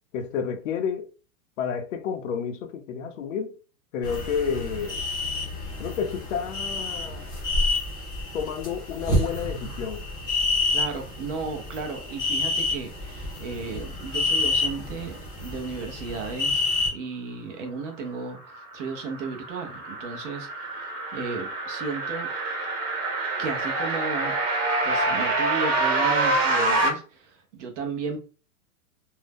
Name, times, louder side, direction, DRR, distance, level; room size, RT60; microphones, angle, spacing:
voice 1, 0.1-1.1 1.6-3.5 3.9-5.0 5.8-7.3 8.3-10.0, left 7 dB, 55° left, 0.6 m, -30 dB
sound 1, 4.0-16.9, left 2 dB, 10° left, 0.6 m, -28 dB
voice 2, 10.7-16.7 16.9-22.3 23.4-24.3 24.8-28.2, right 4 dB, 50° right, 0.8 m, -34 dB
sound 2, 18.5-26.9, right 2 dB, 85° right, 1.3 m, -26 dB
2.7 x 2.1 x 3.4 m
supercardioid pair, 170°, 45 cm